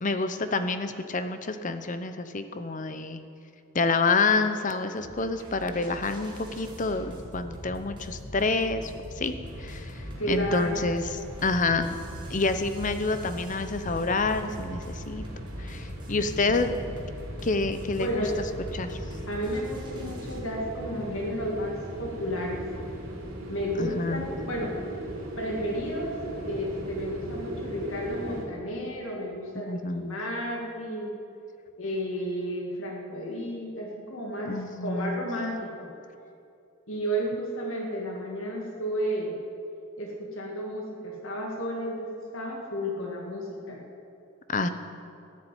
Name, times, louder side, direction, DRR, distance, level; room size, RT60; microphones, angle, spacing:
voice 1, 0.0-3.2 3.7-8.9 9.2-11.9 12.3-15.2 15.6-16.7 17.4-18.3 18.7-19.0 23.8-24.2 29.6-30.2 34.5-35.2 44.5-44.7, left 3 dB, 40° left, 10 dB, 0.8 m, -28 dB
sound 1, 5.0-20.4, equal, 20° right, 2.0 m, -42 dB
sound 2, 9.4-28.5, right 1 dB, 85° right, 3.7 m, -39 dB
voice 2, 10.2-10.8 16.5-16.7 18.0-18.3 19.3-22.6 23.5-24.7 25.4-26.1 26.4-31.2 31.8-35.9 36.9-39.4 40.0-43.8, equal, 75° left, -1 dB, 2.0 m, -32 dB
14.0 x 7.6 x 9.1 m, 2.6 s
head